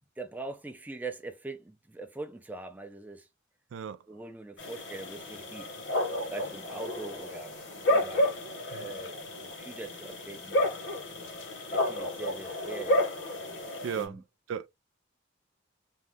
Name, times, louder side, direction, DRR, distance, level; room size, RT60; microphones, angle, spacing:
voice 1, 0.2-3.3 4.1-5.7 6.3-7.6 7.9-8.3 8.6-10.8 11.7-13.1 14.0-14.2, right 3 dB, 10° right, 0.4 m, -42 dB
voice 2, 3.7-4.0 8.7-8.9 13.8-14.2 14.5-14.7, right 7 dB, 75° right, 0.3 m, -35 dB
sound 1, 4.6-14.0, left 1 dB, 65° left, 1.2 m, -31 dB
2.6 x 2.2 x 3.3 m
head